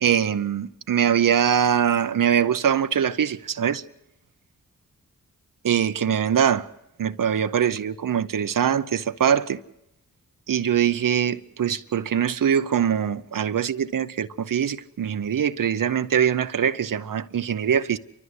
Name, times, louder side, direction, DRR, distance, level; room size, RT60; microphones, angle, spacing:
voice 1, 0.0-3.8 5.6-6.7 7.0-9.6 10.5-18.0, right 8 dB, 75° right, 0.8 m, -23 dB
29.5 x 13.5 x 8.0 m
cardioid pair, 55°, 33 cm